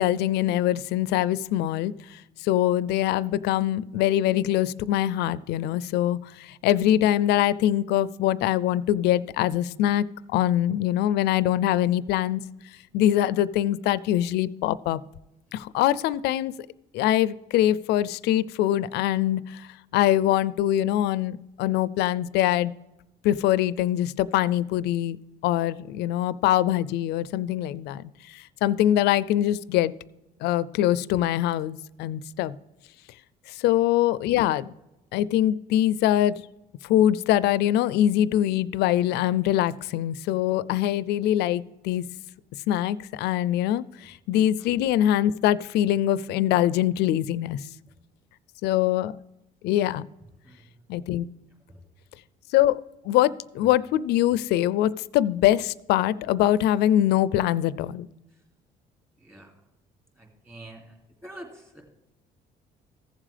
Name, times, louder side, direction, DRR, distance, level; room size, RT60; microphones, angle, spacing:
voice 1, 0.0-12.4 12.9-15.0 15.5-16.5 16.9-22.7 23.2-25.2 25.4-29.9 30.4-32.5 33.5-34.7 35.1-36.4 36.8-42.0 42.7-47.6 48.6-49.1 49.6-50.0 50.9-51.3 52.5-58.1, left 12 dB, 80° left, 19 dB, 0.4 m, -23 dB
voice 2, 50.4-50.8 51.7-51.8 59.2-59.5 60.2-61.8, right 1 dB, 15° right, 2 dB, 2.6 m, -46 dB
15.0 x 7.3 x 3.3 m, 0.98 s
cardioid pair, 110°, 17 cm